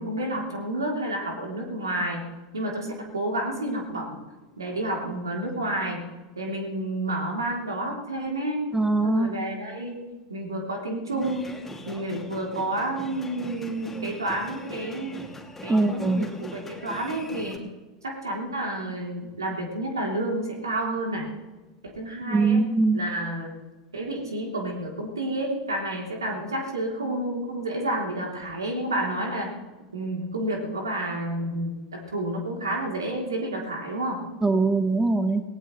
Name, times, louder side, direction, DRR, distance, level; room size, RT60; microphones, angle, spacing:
voice 1, 0.0-2.2 2.5-4.2 4.6-6.0 6.3-8.6 9.0-11.5 11.9-15.3 15.6-17.7 18.0-21.3 21.8-22.6 22.9-23.5 23.9-29.5 29.9-34.2, right 1 dB, 85° right, -1 dB, 3.1 m, -30 dB
voice 2, 8.7-9.3 15.7-16.3 22.3-23.0 34.4-35.4, right 3 dB, 15° right, 10 dB, 1.0 m, -22 dB
sound 1, 11.1-17.6, left 2 dB, 10° left, 2.5 m, -41 dB
18.5 x 18.0 x 3.2 m, 1.2 s
figure-of-eight pair, 85°, 2 cm